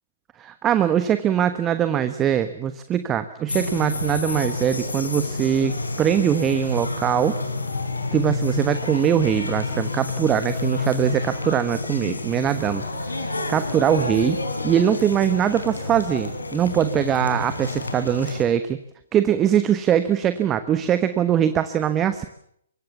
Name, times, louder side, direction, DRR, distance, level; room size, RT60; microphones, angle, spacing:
voice 1, 0.4-7.4 8.1-13.1 13.5-18.8 19.1-22.3, right 10 dB, 20° right, 11 dB, 1.2 m, -22 dB
sound 1, 3.5-18.4, left 3 dB, 75° left, 4.5 m, -29 dB
24.0 x 23.5 x 7.2 m, 0.69 s
figure-of-eight pair, 125°, 0 cm